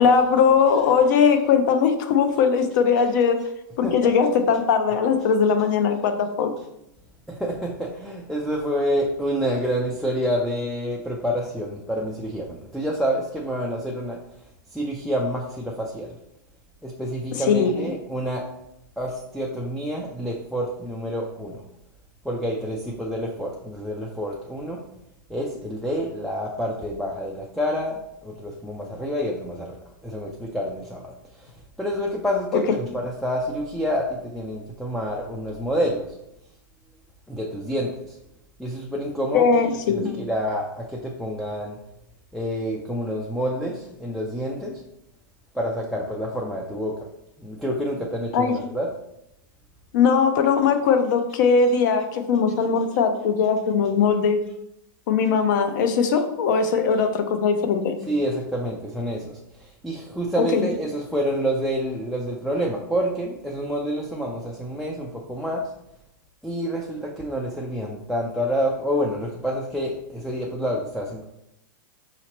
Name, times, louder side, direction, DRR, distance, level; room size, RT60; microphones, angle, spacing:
voice 1, 0.0-3.4 3.8-6.5 17.3-17.7 32.5-32.6 39.3-40.1 48.3-48.6 49.9-54.4 55.1-58.0 60.5-60.7, left 6 dB, 55° left, 7 dB, 0.6 m, -20 dB
voice 2, 7.3-14.2 14.7-16.1 16.8-18.4 19.0-21.6 22.3-24.8 25.3-29.7 30.0-31.0 31.8-36.0 37.3-37.9 38.6-39.6 39.9-41.8 42.3-44.7 45.6-46.9 47.4-48.9 58.1-59.3 59.8-65.6 66.4-71.2, equal, ahead, -2 dB, 0.3 m, -28 dB
5.0 x 2.9 x 2.9 m, 0.84 s
supercardioid pair, 145°, 12 cm